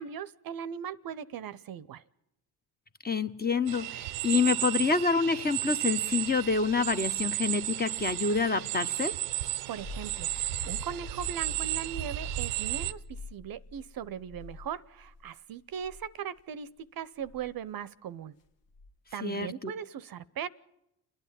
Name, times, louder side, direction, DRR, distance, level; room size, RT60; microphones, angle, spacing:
voice 1, 0.0-2.0 9.7-18.3 19.1-20.5, right 8 dB, 45° right, 17 dB, 0.7 m, -39 dB
voice 2, 3.0-9.1 19.2-19.7, left 4 dB, 20° left, 10 dB, 0.8 m, -27 dB
sound 1, 3.7-12.9, right 16 dB, 85° right, 0.7 m, -33 dB
sound 2, 9.4-15.3 15.7-16.1 17.2-17.5 18.7-19.1, left 2 dB, 65° left, 1.5 m, -45 dB
29.0 x 9.9 x 10.0 m, 0.86 s
supercardioid pair, 65°, 47 cm